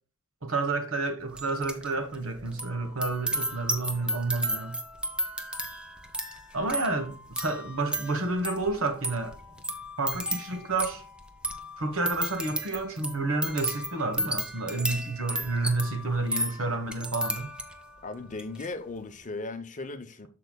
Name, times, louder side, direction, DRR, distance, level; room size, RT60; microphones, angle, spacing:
voice 1, 0.4-4.8 6.5-9.3 10.0-11.0 11.8-17.5, right 3 dB, 75° right, 1.3 m, -30 dB
sound 1, 1.4-17.9 18.3-18.7, right 1 dB, 5° right, 0.8 m, -34 dB
voice 2, 18.0-20.3, left 3 dB, 35° left, 0.7 m, -37 dB
13.5 x 4.6 x 2.3 m
head